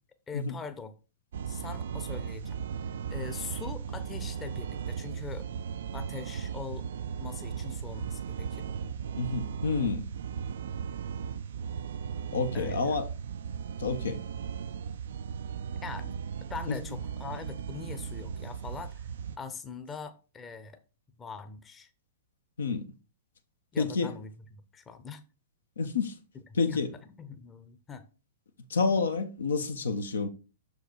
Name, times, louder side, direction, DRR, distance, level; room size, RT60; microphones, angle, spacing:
voice 1, 0.3-0.9 1.5-2.7 3.1-5.5 5.9-6.9 7.2-9.0 12.5-13.0 15.8-16.2 16.5-19.0 19.4-20.8 21.2-21.9 23.7-25.2 26.7-26.8 27.2-28.1, left 5 dB, 20° left, 0.8 m, -42 dB
sound 1, 1.3-19.4, right 7 dB, 65° right, 0.4 m, -37 dB
voice 2, 9.1-10.1 12.3-13.1 13.8-14.2 16.7-17.0 22.6-22.9 23.8-24.1 25.8-26.2 26.5-27.0 28.7-30.3, left 4 dB, 70° left, 0.9 m, -29 dB
6.6 x 4.8 x 4.5 m
figure-of-eight pair, 105°, 0 cm